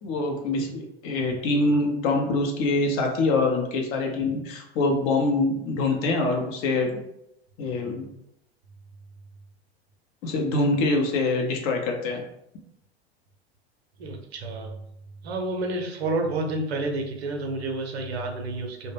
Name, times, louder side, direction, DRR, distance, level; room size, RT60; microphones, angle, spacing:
voice 1, 0.0-7.0 7.6-8.1 10.2-12.2, left 2 dB, 40° left, 2 dB, 0.6 m, -24 dB
voice 2, 14.0-14.9 15.2-18.9, right 2 dB, 70° right, 3 dB, 0.6 m, -30 dB
2.1 x 2.0 x 3.2 m, 0.79 s
figure-of-eight pair, 85°, 32 cm